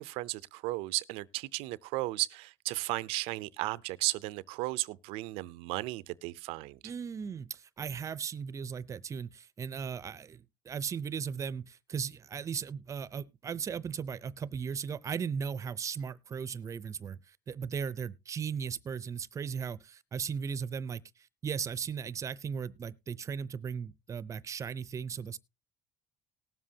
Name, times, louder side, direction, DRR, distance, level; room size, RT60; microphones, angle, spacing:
voice 1, 0.0-6.8, right 20 dB, 85° right, 0.5 m, -35 dB
voice 2, 6.8-17.2 17.5-21.0 21.4-25.4, right 6 dB, 35° right, 0.6 m, -37 dB
19.0 x 7.5 x 2.8 m
cardioid pair, 115°, 9 cm